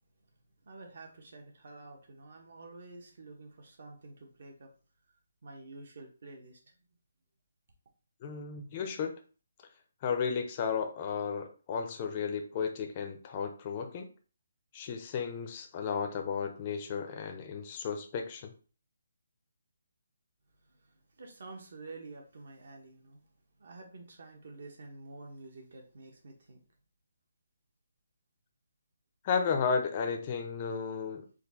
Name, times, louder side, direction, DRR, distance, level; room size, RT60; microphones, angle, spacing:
voice 1, 0.6-4.7 5.4-6.7 20.7-23.2 23.6-26.6, right 3 dB, 55° right, 2 dB, 1.3 m, -49 dB
voice 2, 8.2-9.1 10.0-14.1 14.7-18.5 29.2-31.2, left 6 dB, 25° left, 5 dB, 0.5 m, -33 dB
4.3 x 2.5 x 4.1 m, 0.37 s
hypercardioid pair, 170°, 0 cm